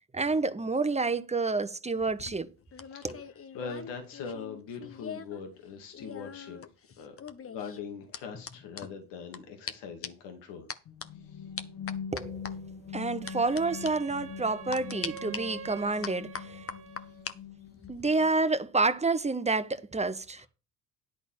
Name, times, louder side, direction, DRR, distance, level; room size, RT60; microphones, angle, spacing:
voice 1, 0.1-2.5 3.0-3.2 12.1-12.4 12.9-16.6 17.9-20.5, right 3 dB, 15° right, 1.0 m, -29 dB
sound 1, 2.0-5.4 5.7-9.4 9.7-9.8 10.0-10.3 10.7-11.1 11.6-12.5 13.3-13.6 13.9-14.0 14.7-15.4 16.0-17.4 17.7-18.0, left 6 dB, 30° left, 1.1 m, -41 dB
voice 2, 3.5-6.6 7.0-7.2 7.4-10.7 11.3-11.4, left 5 dB, 65° left, 2.3 m, -41 dB
sound 2, 10.9-18.7, left 7 dB, 50° left, 2.0 m, -43 dB
Wind instrument woodwind instrument, 13.2-17.3, right 7 dB, 90° right, 1.1 m, -46 dB
11.0 x 4.1 x 7.3 m
hypercardioid pair, 60°, 45 cm